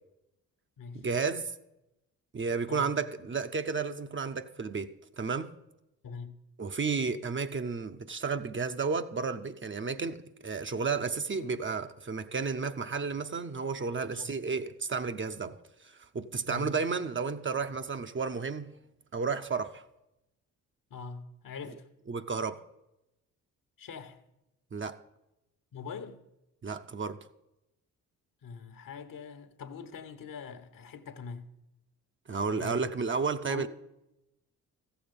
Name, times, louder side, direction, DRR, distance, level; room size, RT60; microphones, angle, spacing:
voice 1, 1.0-1.5 2.3-5.5 6.6-15.6 15.8-18.7 19.1-19.8 22.1-22.6 24.7-25.0 26.6-27.2 32.3-33.7, right 5 dB, 30° right, 0.7 m, -32 dB
voice 2, 6.0-6.4 14.1-14.4 16.5-16.7 20.9-21.9 23.8-24.2 25.7-26.2 28.4-31.5 32.4-32.9 33.5-33.7, left 5 dB, 60° left, 1.1 m, -43 dB
14.5 x 7.0 x 5.3 m
supercardioid pair, 50°, 38 cm